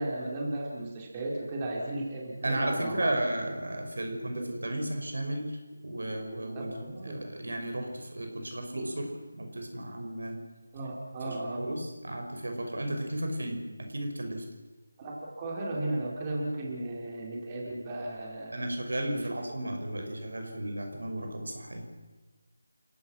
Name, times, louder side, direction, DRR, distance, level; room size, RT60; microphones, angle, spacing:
voice 1, 0.0-3.1 4.3-4.5 6.5-7.2 10.7-11.6 15.0-18.6 19.0-19.3, right 1 dB, 20° right, -3 dB, 4.5 m, -35 dB
voice 2, 2.4-5.6 5.8-10.4 11.3-14.4 18.5-21.9, right 1 dB, 70° right, 4 dB, 6.0 m, -34 dB
30.0 x 17.0 x 6.3 m, 1.2 s
figure-of-eight pair, 165°, 0 cm